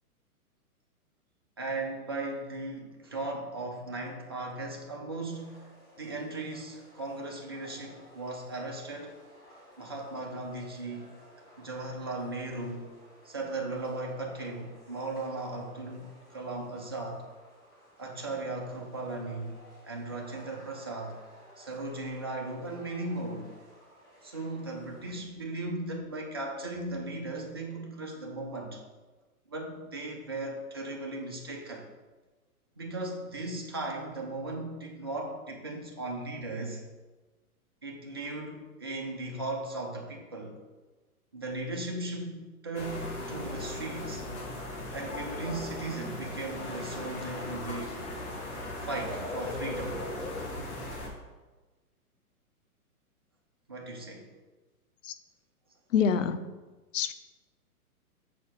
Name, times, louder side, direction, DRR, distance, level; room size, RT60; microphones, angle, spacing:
voice 1, 1.6-5.7 6.0-9.1 9.8-11.1 11.6-12.9 13.2-17.3 18.0-19.6 19.8-21.2 21.6-23.5 24.2-28.8 29.5-31.9 32.8-36.8 37.8-40.6 41.3-44.3 44.9-48.0 48.8-50.1 53.7-54.3, right 2 dB, 20° right, 0 dB, 0.3 m, -37 dB
sound 1, 5.3-25.1, equal, 10° left, 2.3 m, -56 dB
sound 2, 42.7-51.1, left 2 dB, 25° left, 1.6 m, -38 dB
voice 2, 55.9-56.5 56.9-57.1, left 7 dB, 55° left, 11 dB, 0.7 m, -26 dB
6.1 x 4.2 x 6.1 m, 1.2 s
hypercardioid pair, 135°, 45 cm